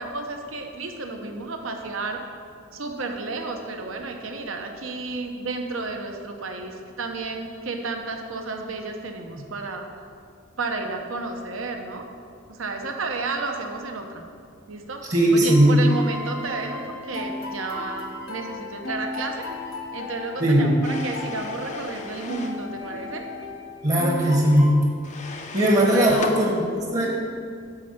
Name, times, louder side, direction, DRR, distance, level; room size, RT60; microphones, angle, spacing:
voice 1, 0.0-2.2 2.7-9.9 10.6-12.1 12.5-14.2 14.7-15.1 15.3-19.5 19.9-23.2 25.9-26.2, right 3 dB, 75° right, 4 dB, 0.9 m, -32 dB
voice 2, 15.1-15.7 20.4-20.7 23.8-24.7 25.5-27.1, right 1 dB, 35° right, -1 dB, 1.1 m, -18 dB
sound 1, 15.5-24.7, left 2 dB, 70° left, 1.3 m, -35 dB
sound 2, 20.8-22.6 25.0-26.4, left 3 dB, 35° left, 0.7 m, -36 dB
9.8 x 4.4 x 6.6 m, 2.3 s
head